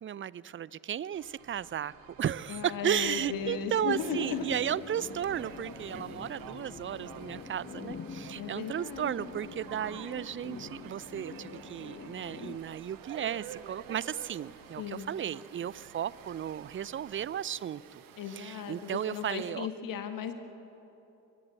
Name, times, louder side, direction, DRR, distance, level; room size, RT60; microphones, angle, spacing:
voice 1, 0.0-18.0 18.3-19.7, right 9 dB, 30° right, 20 dB, 0.5 m, -34 dB
sound 1, 1.1-17.3, right 6 dB, 75° right, 1.4 m, -58 dB
voice 2, 2.5-4.6 8.3-9.3 14.8-15.1 18.2-20.3, left 7 dB, 55° left, 8 dB, 1.6 m, -36 dB
sound 2, 2.8-12.6, left 5 dB, 30° left, 1.2 m, -46 dB
sound 3, 3.9-19.5, right 8 dB, 55° right, 1.3 m, -50 dB
23.0 x 17.0 x 7.7 m, 3.0 s
figure-of-eight pair, 40°, 40 cm